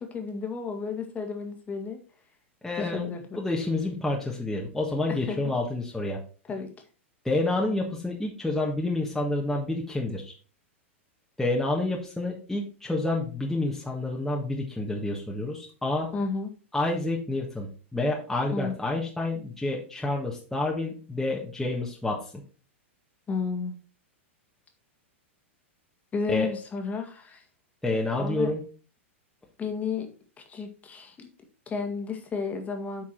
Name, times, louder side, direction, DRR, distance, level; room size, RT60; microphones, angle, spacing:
voice 1, 0.0-2.0 2.8-3.2 5.1-5.4 6.5-6.7 16.1-16.5 18.5-18.7 23.3-23.7 26.1-27.4 28.2-28.5 29.6-30.1 30.4-31.3 31.7-33.0, left 5 dB, 20° left, 4 dB, 1.8 m, -32 dB
voice 2, 2.6-3.1 3.4-6.2 7.2-10.3 11.4-16.1 16.7-22.2 26.3-26.5 27.8-28.6, left 2 dB, 5° left, -2 dB, 1.4 m, -29 dB
8.5 x 4.6 x 4.4 m, 0.38 s
hypercardioid pair, 105°, 7 cm